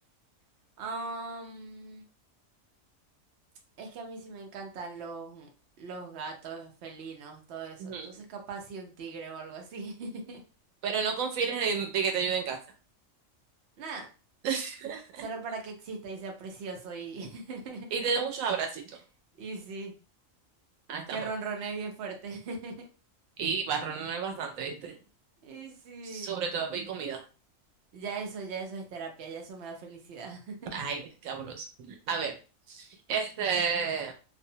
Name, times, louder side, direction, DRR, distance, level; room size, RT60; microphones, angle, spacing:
voice 1, 0.8-2.0 3.8-5.5 5.8-10.4 13.8-14.1 15.2-17.9 19.4-19.9 21.1-22.7 25.4-26.3 27.9-30.7, right 4 dB, 60° right, 2 dB, 0.8 m, -39 dB
voice 2, 10.8-12.6 14.4-15.2 17.9-18.8 20.9-21.3 23.4-25.0 26.0-27.2 30.7-32.3 32.7-34.1, right 6 dB, 90° right, 3 dB, 1.0 m, -31 dB
2.5 x 2.1 x 2.7 m, 0.35 s
omnidirectional pair, 1.4 m